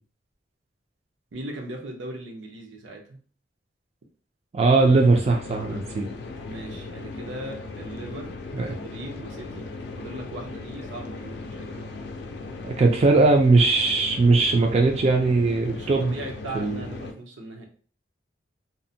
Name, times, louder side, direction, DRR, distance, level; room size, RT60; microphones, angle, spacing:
voice 1, 1.3-3.2 6.5-9.7 10.0-11.9 15.7-17.7, right 1 dB, 85° right, 1 dB, 0.6 m, -39 dB
voice 2, 4.5-6.1 8.5-8.7 12.6-16.1 16.5-16.8, right 3 dB, 35° right, 2 dB, 0.3 m, -19 dB
sound 1, 4.8-17.1, left 3 dB, 65° left, 0.4 m, -38 dB
2.6 x 2.0 x 2.6 m, 0.43 s
head